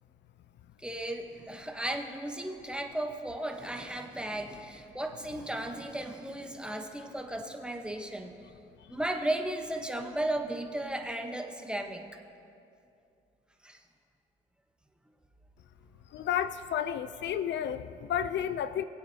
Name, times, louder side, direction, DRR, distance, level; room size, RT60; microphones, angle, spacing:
voice 1, 0.8-8.4 8.9-12.2 13.6-13.8, right 1 dB, 5° right, 3 dB, 1.0 m, -35 dB
voice 2, 16.1-18.8, left 9 dB, 65° left, 12 dB, 0.4 m, -31 dB
20.0 x 8.7 x 2.8 m, 2.6 s
cardioid pair, 90°, 20 cm